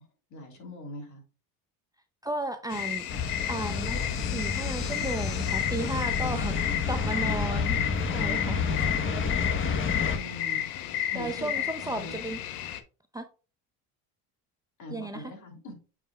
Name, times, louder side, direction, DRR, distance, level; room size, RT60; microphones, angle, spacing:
voice 1, 0.3-1.2 6.2-6.7 10.1-10.7 11.1-11.5 11.9-12.2 14.8-15.7, left 1 dB, 50° left, 2.9 m, -42 dB
voice 2, 2.2-3.1 3.5-8.7 11.0-12.4 13.1-13.3 14.9-15.3, right 2 dB, 10° right, 0.6 m, -34 dB
sound 1, 2.7-12.8, left 11 dB, 70° left, 1.0 m, -33 dB
sound 2, 3.1-10.2, left 5 dB, 35° left, 1.2 m, -30 dB
8.4 x 4.9 x 2.3 m
supercardioid pair, 105°, 36 cm